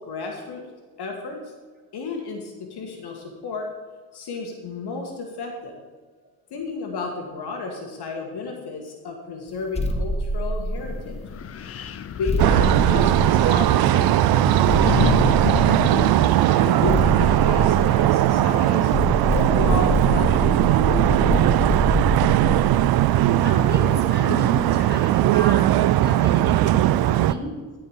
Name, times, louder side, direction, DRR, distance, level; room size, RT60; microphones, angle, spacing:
voice 1, 0.1-0.7 1.0-1.4 1.9-3.7 4.1-5.7 6.5-11.2 12.1-14.7 15.5-18.9 19.3-21.6, left 3 dB, 55° left, 2 dB, 1.6 m, -32 dB
sound 1, 9.7-11.2 12.3-13.9 14.6-16.0 16.9-18.5 18.9-24.2, equal, 15° left, 1.3 m, -26 dB
Wind, 10.8-20.7, left 7 dB, 30° left, 0.6 m, -32 dB
sound 2, 12.4-27.3, right 13 dB, 50° right, 0.5 m, -19 dB
voice 2, 23.4-27.7, right 1 dB, 20° right, 1 dB, 2.6 m, -33 dB
13.0 x 4.8 x 4.9 m, 1.5 s
hypercardioid pair, 60°, 48 cm